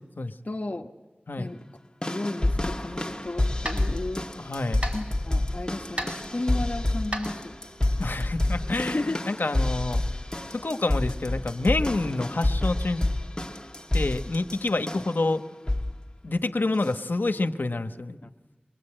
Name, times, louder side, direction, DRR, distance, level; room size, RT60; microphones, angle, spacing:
voice 1, 0.4-0.9 1.4-1.6 2.0-4.3 4.9-7.6 8.9-9.2 18.2-18.3, left 2 dB, 60° left, 2 dB, 1.2 m, -33 dB
sound 1, 2.0-15.2 15.7-16.0 16.8-16.9, left 1 dB, 25° left, 1.6 m, -28 dB
sound 2, 2.9-8.2, right 1 dB, 40° right, 4.6 m, -39 dB
voice 2, 4.4-4.8 8.0-10.0 10.5-13.0 13.9-15.4 16.2-18.2, left 2 dB, 80° left, 8 dB, 1.1 m, -28 dB
24.5 x 22.5 x 8.9 m, 1.2 s
wide cardioid pair, 45°, 3 cm